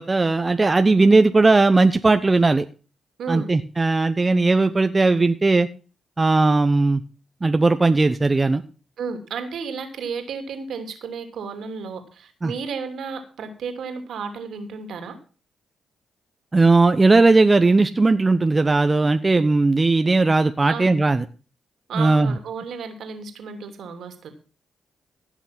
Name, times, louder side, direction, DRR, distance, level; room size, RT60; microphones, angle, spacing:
voice 1, 0.0-2.6 3.3-5.7 6.2-7.0 7.4-8.6 12.4-12.5 16.5-21.2 22.0-22.3, right 3 dB, 30° right, 9 dB, 0.9 m, -17 dB
voice 2, 9.0-15.2 20.7-20.9 21.9-24.3, right 5 dB, 70° right, 7 dB, 2.7 m, -33 dB
16.0 x 6.2 x 5.9 m, 0.37 s
hypercardioid pair, 45°, 0 cm